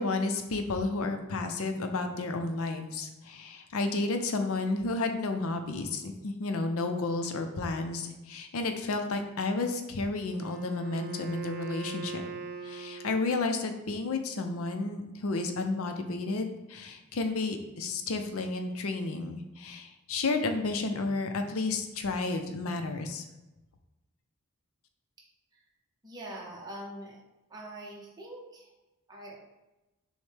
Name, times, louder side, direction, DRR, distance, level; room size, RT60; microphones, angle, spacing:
voice 1, 0.0-12.2 12.6-23.2, left 3 dB, 65° left, 6 dB, 0.5 m, -32 dB
Wind instrument woodwind instrument, 10.3-13.6, right 4 dB, 75° right, 0.7 m, -41 dB
voice 2, 26.0-27.2 27.5-28.7 29.1-29.4, right 1 dB, 20° right, -3 dB, 0.6 m, -43 dB
6.2 x 2.1 x 3.3 m, 1.0 s
head